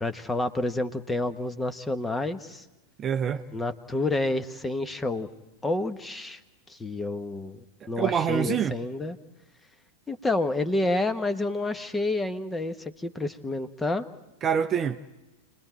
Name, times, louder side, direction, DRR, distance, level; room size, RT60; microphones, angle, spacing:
voice 1, 0.0-2.6 3.5-5.3 5.6-6.4 6.7-7.6 7.9-9.2 10.1-14.1, left 2 dB, 10° left, 1.3 m, -29 dB
voice 2, 3.0-3.5 7.8-8.7 14.4-15.0, right 8 dB, 25° right, 0.8 m, -26 dB
29.5 x 21.0 x 4.5 m
figure-of-eight pair, 90°, 0 cm